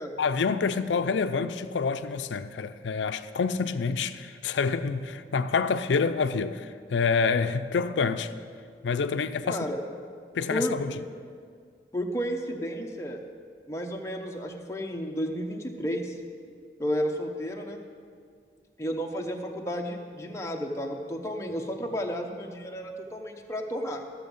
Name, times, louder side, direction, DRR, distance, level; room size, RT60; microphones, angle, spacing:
voice 1, 0.2-8.3 8.8-9.7 10.3-11.0, left 5 dB, 85° left, 0.4 m, -27 dB
voice 2, 9.4-9.8 10.5-10.8 11.9-13.2 13.7-16.2 16.8-17.8 18.8-24.0, equal, 15° left, 0.8 m, -32 dB
13.5 x 7.0 x 5.4 m
head